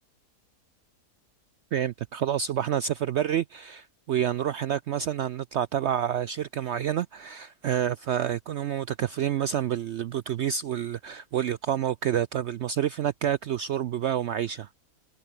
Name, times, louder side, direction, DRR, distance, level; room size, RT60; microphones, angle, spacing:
voice 1, 1.7-14.7, right 10 dB, 75° right, 0.6 m, -28 dB
omnidirectional pair, 1.7 m